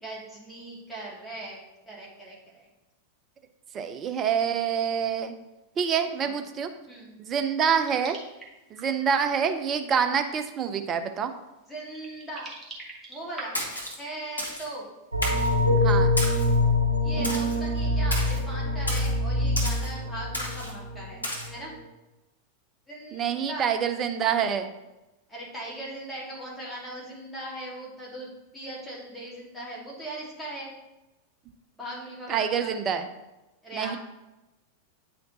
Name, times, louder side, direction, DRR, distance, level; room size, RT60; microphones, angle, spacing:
voice 1, 0.0-1.6 1.9-2.7 6.2-6.3 6.9-7.1 11.7-12.6 13.1-13.6 14.0-14.9 17.0-21.7 22.9-23.7 25.3-30.7 31.8-32.8 33.6-34.0, right 1 dB, 5° left, -5 dB, 2.1 m, -39 dB
voice 2, 3.7-5.3 5.8-6.7 7.2-8.2 8.7-11.3 15.8-16.1 23.1-24.7 32.3-33.1 33.7-34.0, right 7 dB, 30° right, 7 dB, 0.6 m, -26 dB
sound 1, 7.8-9.1 10.1-10.2 10.8-10.9 11.7-14.6, right 2 dB, 10° right, 1.4 m, -44 dB
Splash splatter, 13.5-14.0 14.4-14.7 15.2-15.5 16.2-16.5 17.2-17.6 18.1-18.4 18.9-19.1 19.6-19.9 20.3-20.7 21.2-21.5, left 1 dB, 80° left, 1.1 m, -32 dB
sound 2, 15.1-21.1 21.4-21.5, left 2 dB, 80° right, 0.8 m, -25 dB
9.1 x 4.3 x 2.7 m, 1.0 s
figure-of-eight pair, 90°, 0 cm